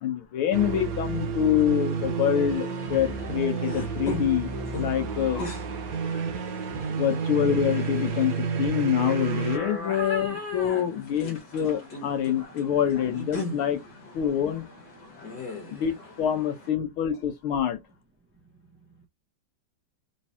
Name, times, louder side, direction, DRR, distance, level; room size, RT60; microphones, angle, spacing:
voice 1, 0.0-5.5 7.0-13.8 14.1-14.7 15.7-17.8, left 9 dB, 80° left, 1.8 m, -26 dB
sound 1, 0.5-9.6, right 5 dB, 60° right, 1.0 m, -30 dB
sound 2, 3.0-16.7, left 2 dB, 55° left, 2.1 m, -39 dB
voice 2, 18.3-19.1, right 4 dB, 10° right, 0.6 m, -60 dB
4.7 x 3.2 x 2.8 m
omnidirectional pair, 2.3 m